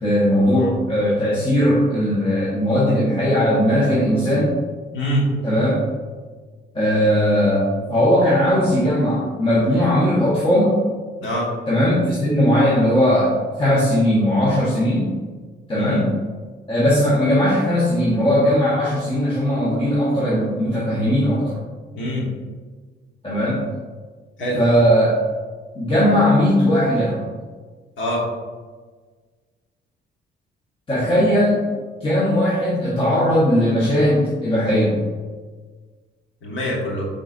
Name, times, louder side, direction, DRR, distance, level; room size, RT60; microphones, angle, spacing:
voice 1, 0.0-4.6 5.4-5.8 6.7-10.8 11.7-13.3 13.6-15.1 15.7-16.1 16.7-21.6 23.2-23.6 24.5-25.2 25.7-27.3 30.9-31.7 32.0-35.0, equal, 25° left, -7 dB, 1.1 m, -18 dB
voice 2, 4.9-5.2 11.2-11.5 15.8-16.0 21.9-22.3 24.4-24.6 28.0-28.2 36.4-37.1, equal, 70° left, -3 dB, 1.5 m, -24 dB
5.6 x 3.8 x 2.5 m, 1.5 s
cardioid pair, 90°, 20 cm